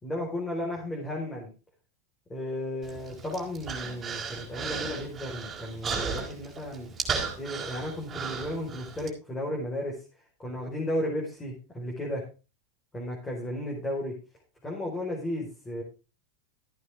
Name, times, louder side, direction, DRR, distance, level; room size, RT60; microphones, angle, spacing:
voice 1, 0.0-1.5 2.3-6.9 7.4-10.0 10.4-12.2 12.9-14.1 14.6-15.8, left 1 dB, 10° left, -2 dB, 4.8 m, -34 dB
Human voice, 2.8-9.1, right 5 dB, 20° right, 4.5 m, -35 dB
14.0 x 9.4 x 3.7 m, 0.32 s
supercardioid pair, 135°, 0 cm